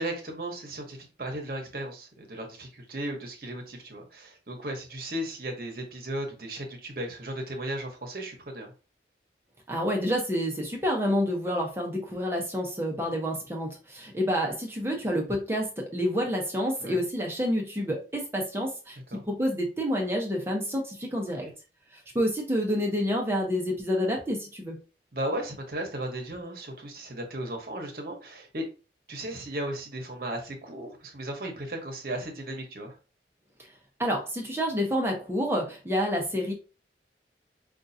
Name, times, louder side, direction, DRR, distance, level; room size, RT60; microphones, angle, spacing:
voice 1, 0.0-8.7 16.8-17.0 19.1-19.2 21.4-21.5 25.1-28.6 29.1-33.0, right 1 dB, 55° right, 1.0 m, -35 dB
voice 2, 9.7-21.5 21.9-24.8 34.0-36.5, equal, 15° right, 0.8 m, -28 dB
5.3 x 2.4 x 2.7 m
head